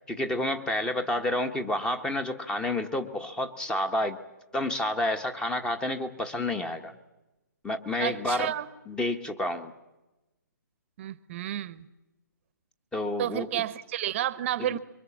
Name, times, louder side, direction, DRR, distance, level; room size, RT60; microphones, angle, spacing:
voice 1, 0.0-4.2 4.5-6.9 7.6-8.5 8.9-9.7 12.9-13.6 14.6-14.8, left 1 dB, 10° left, 8 dB, 1.3 m, -29 dB
voice 2, 8.0-8.7 11.0-11.9 13.2-14.8, right 12 dB, 40° right, 16 dB, 1.1 m, -31 dB
26.0 x 23.5 x 7.4 m, 1.0 s
hypercardioid pair, 140°, 10 cm